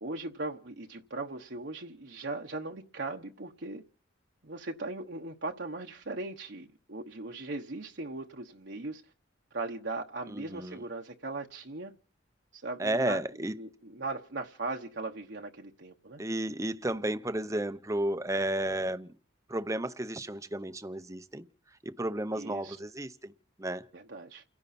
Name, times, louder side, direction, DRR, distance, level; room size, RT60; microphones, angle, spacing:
voice 1, 0.0-3.8 4.4-9.0 9.5-11.9 12.5-13.2 13.6-16.2 22.4-22.8 23.9-24.4, right 2 dB, 60° right, 1.1 m, -39 dB
voice 2, 10.3-10.8 12.8-13.5 16.2-19.1 19.5-21.5 21.8-23.3 23.6-23.8, right 1 dB, 15° right, 0.7 m, -32 dB
30.0 x 10.5 x 4.3 m
head